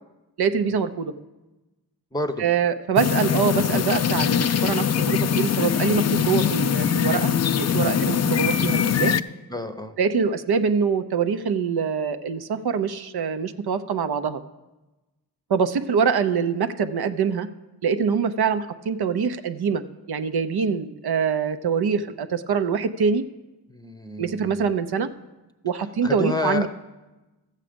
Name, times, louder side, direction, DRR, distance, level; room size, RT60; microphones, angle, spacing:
voice 1, 0.4-1.1 2.4-9.1 10.0-14.4 15.5-17.5 17.8-23.2 24.2-25.1 25.6-26.7, right 6 dB, 65° right, 9 dB, 0.7 m, -24 dB
voice 2, 2.1-2.4 9.5-10.0 23.7-24.7 26.0-26.7, left 2 dB, 10° left, 7 dB, 0.7 m, -29 dB
sound 1, 3.0-9.2, left 8 dB, 40° left, 0.4 m, -22 dB
13.5 x 7.4 x 5.1 m, 1.1 s
cardioid pair, 70°, 41 cm